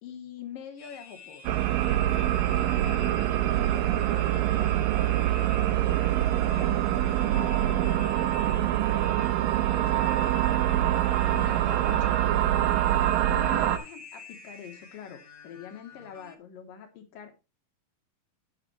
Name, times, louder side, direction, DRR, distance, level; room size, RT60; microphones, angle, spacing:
voice 1, 0.0-1.6 11.3-12.3 13.3-17.4, left 8 dB, 80° left, 3.0 m, -44 dB
sound 1, 0.8-16.3, left 4 dB, 45° left, 1.2 m, -47 dB
sound 2, 1.5-13.8, right 13 dB, 80° right, 2.5 m, -25 dB
voice 2, 2.8-4.6 5.2-6.1 6.4-7.6 9.1-11.3, left 1 dB, ahead, 4.8 m, -48 dB
10.5 x 8.3 x 3.2 m
omnidirectional pair, 3.9 m